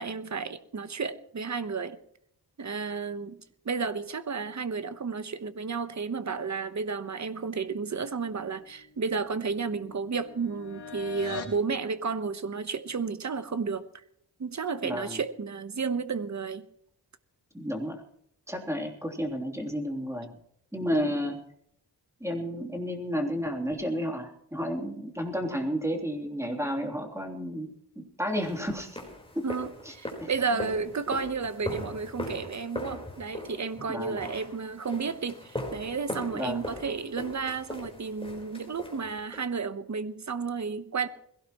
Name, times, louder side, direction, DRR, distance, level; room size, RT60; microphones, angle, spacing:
voice 1, 0.0-2.0 2.6-13.9 14.4-16.7 29.4-41.1, right 5 dB, 45° right, 1.1 m, -32 dB
sound 1, 8.4-11.6, left 6 dB, 85° left, 3.3 m, -43 dB
voice 2, 14.8-15.2 17.5-18.0 18.5-20.3 20.7-21.4 22.2-29.0 29.3-29.4 29.8-29.9 30.2-30.3 33.9-34.2 36.3-36.6, equal, 5° right, 3.2 m, -32 dB
sound 2, 28.4-39.5, left 1 dB, 15° left, 4.3 m, -40 dB
21.5 x 17.0 x 3.1 m
wide cardioid pair, 125°, 40 cm